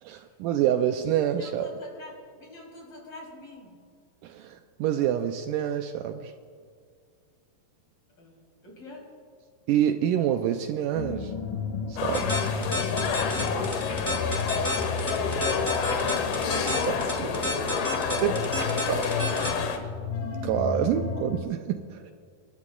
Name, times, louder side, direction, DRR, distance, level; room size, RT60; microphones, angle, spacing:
voice 1, 0.0-1.7 4.2-6.3 9.7-11.3 11.9-12.4 16.9-17.3 18.2-18.3 18.9-19.0 20.4-22.1, right 10 dB, 85° right, 7 dB, 1.9 m, -27 dB
voice 2, 1.4-3.8 8.2-9.1 17.2-19.9, equal, 40° left, -3 dB, 4.1 m, -45 dB
sound 1, 10.9-21.4, left 5 dB, 70° left, 3.6 m, -34 dB
sound 2, 12.0-19.8, left 6 dB, 90° left, 3.0 m, -29 dB
sound 3, 12.1-19.5, left 1 dB, 20° left, 0.6 m, -30 dB
28.5 x 12.0 x 2.4 m, 2.1 s
omnidirectional pair, 4.2 m